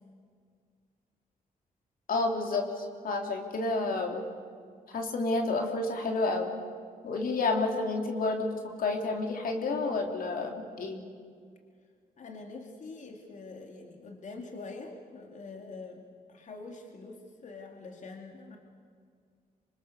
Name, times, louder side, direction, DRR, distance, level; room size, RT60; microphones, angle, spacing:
voice 1, 2.1-4.3 4.9-6.5 7.0-11.0, left 3 dB, 75° left, 3 dB, 3.2 m, -30 dB
voice 2, 12.2-16.0 16.3-18.6, left 3 dB, 55° left, 2 dB, 2.8 m, -44 dB
26.5 x 25.5 x 7.0 m, 2.1 s
cardioid pair, 100°, 15 cm